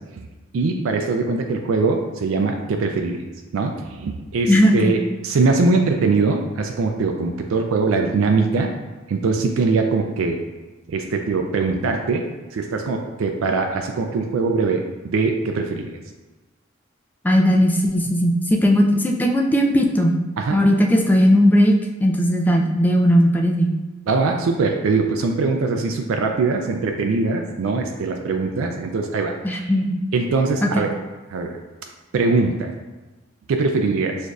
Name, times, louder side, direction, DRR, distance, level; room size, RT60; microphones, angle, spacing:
voice 1, 0.5-3.2 3.5-8.7 9.1-10.4 10.9-15.9 20.4-20.6 24.1-29.7 30.1-30.9 31.3-31.6 32.1-32.7 33.5-34.2, right 3 dB, 90° right, 3 dB, 0.4 m, -22 dB
voice 2, 4.5-5.0 17.2-20.2 20.5-21.7 22.0-23.7 29.4-29.9 30.6-30.7, equal, 10° left, 1 dB, 0.3 m, -17 dB
6.3 x 2.6 x 2.4 m, 1.2 s
head